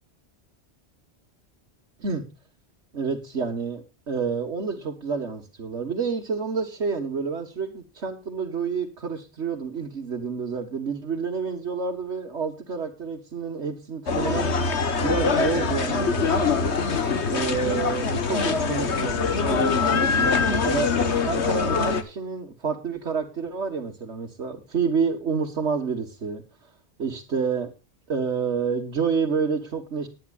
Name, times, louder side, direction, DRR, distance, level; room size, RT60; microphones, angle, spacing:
voice 1, 2.9-14.5 15.0-16.6 17.3-20.9 21.2-26.4 27.0-27.7 28.1-30.1, right 5 dB, 90° right, 1 dB, 2.0 m, -29 dB
Marketplace Gahanga Market Kigali, 14.1-22.0, left 4 dB, 80° left, 1.7 m, -23 dB
20.0 x 10.5 x 2.5 m, 0.29 s
omnidirectional pair, 1.1 m